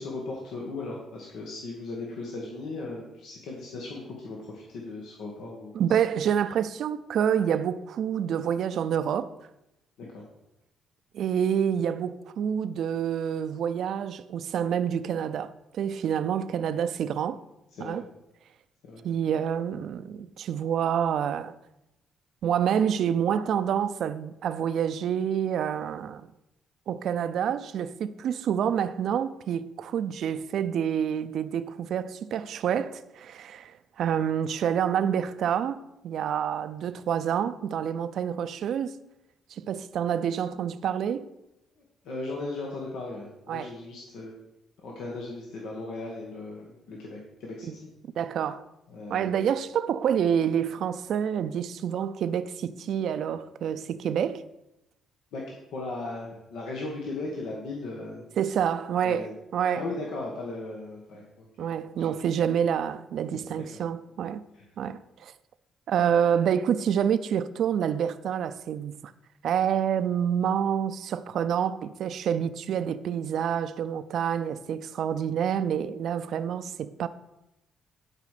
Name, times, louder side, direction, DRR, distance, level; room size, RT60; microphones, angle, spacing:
voice 1, 0.0-5.7 10.0-10.2 17.7-18.0 18.8-19.0 42.0-44.4 44.8-47.9 48.9-49.4 55.3-58.3 59.0-59.3 59.7-61.4 62.0-62.2 63.3-63.4 64.5-64.7, left 2 dB, 80° left, 1.7 m, -37 dB
voice 2, 5.7-9.3 11.1-17.4 17.8-18.0 19.0-21.5 22.4-26.3 26.9-39.0 39.5-41.3 43.5-43.7 47.7-47.8 48.2-48.6 49.1-54.4 58.4-59.3 59.5-59.8 61.6-64.4 64.8-65.3 65.9-69.1 69.4-77.1, right 8 dB, 70° right, 0.5 m, -27 dB
11.5 x 5.2 x 5.0 m
cardioid pair, 90°, 0 cm